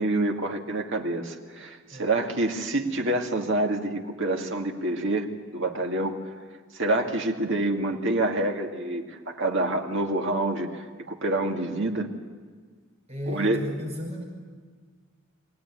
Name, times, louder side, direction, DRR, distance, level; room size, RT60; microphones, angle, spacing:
voice 1, 0.0-6.2 6.7-12.1 13.3-13.6, right 2 dB, 60° right, 3 dB, 2.1 m, -27 dB
voice 2, 13.1-14.2, left 1 dB, 30° right, -1 dB, 5.3 m, -34 dB
25.0 x 17.5 x 9.6 m, 1.5 s
head